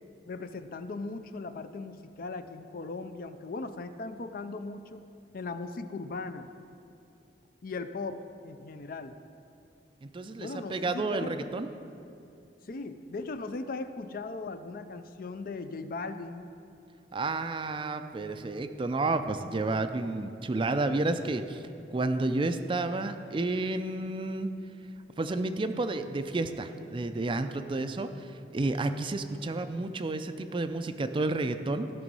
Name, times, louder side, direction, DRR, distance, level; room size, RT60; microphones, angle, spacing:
voice 1, 0.3-5.0 5.3-6.5 7.6-9.2 10.4-11.5 12.6-16.5, left 3 dB, 50° left, 10 dB, 0.5 m, -38 dB
voice 2, 10.0-11.7 17.1-24.5 25.2-31.9, right 2 dB, 30° right, 9 dB, 0.4 m, -31 dB
14.5 x 6.1 x 5.4 m, 2.6 s
head